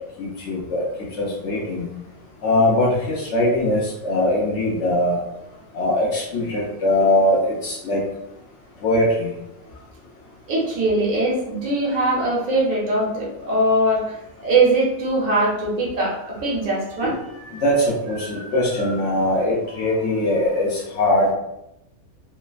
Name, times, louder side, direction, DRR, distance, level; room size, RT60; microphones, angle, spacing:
voice 1, 0.2-0.8 1.2-1.9 2.4-5.2 5.7-8.0 8.8-9.3 17.6-21.3, left 1 dB, 65° left, -4 dB, 0.8 m, -21 dB
voice 2, 10.5-14.1 14.4-17.6 18.2-18.9, right 2 dB, 70° right, -5 dB, 1.3 m, -22 dB
3.2 x 2.0 x 2.3 m, 0.85 s
omnidirectional pair, 1.5 m